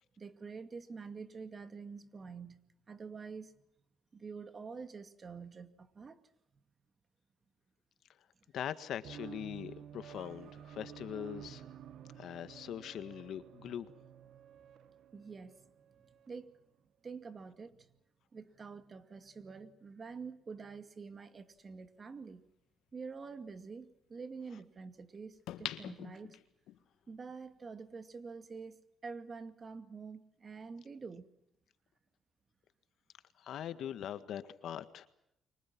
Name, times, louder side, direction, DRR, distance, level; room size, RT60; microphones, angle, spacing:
voice 1, 0.2-2.6 2.9-3.5 4.1-6.2 15.1-15.7 16.0-16.6 17.0-17.9 18.3-22.4 22.9-26.4 27.1-31.3, right 5 dB, 35° right, 2.2 m, -47 dB
voice 2, 8.5-11.6 12.2-13.9 33.4-35.1, left 10 dB, 70° left, 1.7 m, -42 dB
sound 1, 9.0-16.4, right 9 dB, 70° right, 1.3 m, -52 dB
sound 2, 21.9-22.0 25.5-26.8 27.3-27.4, left 13 dB, 90° left, 1.7 m, -43 dB
29.5 x 24.5 x 6.1 m
cardioid pair, 100°, 0 cm